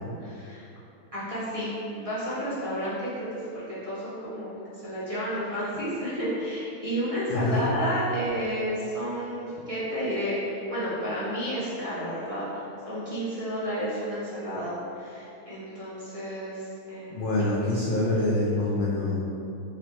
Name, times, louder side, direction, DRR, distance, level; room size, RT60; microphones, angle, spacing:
voice 1, 0.2-0.6 1.1-3.3 3.5-17.2, equal, 30° right, -11 dB, 0.7 m, -31 dB
voice 2, 7.3-7.7 17.1-19.2, left 2 dB, 60° left, -7 dB, 0.5 m, -25 dB
3.1 x 2.9 x 4.4 m, 2.7 s
omnidirectional pair, 1.5 m